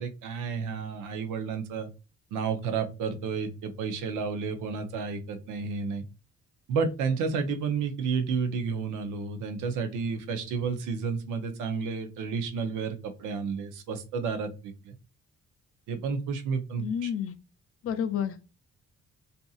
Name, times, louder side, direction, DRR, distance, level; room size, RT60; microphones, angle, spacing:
voice 1, 0.0-1.9 2.3-6.0 6.7-15.0 15.9-17.1, right 5 dB, 90° right, 8 dB, 0.6 m, -31 dB
voice 2, 16.8-17.4 17.8-18.5, left 8 dB, 50° left, 11 dB, 0.4 m, -30 dB
2.8 x 2.5 x 2.3 m, 0.31 s
cardioid pair, 90°, 30 cm